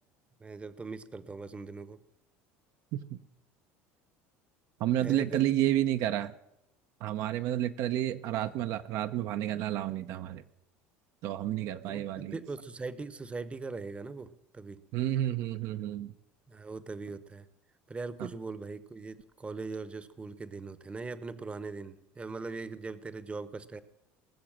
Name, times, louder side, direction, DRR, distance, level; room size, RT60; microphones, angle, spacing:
voice 1, 0.4-2.0 5.0-5.4 11.9-14.8 16.5-17.5 17.9-23.8, right 4 dB, 20° right, 15 dB, 0.8 m, -40 dB
voice 2, 4.8-6.3 7.0-10.4 11.2-12.3 14.9-16.1 18.2-18.3, right 13 dB, 65° right, 9 dB, 0.6 m, -30 dB
19.5 x 6.8 x 7.4 m, 0.87 s
supercardioid pair, 100°, 6 cm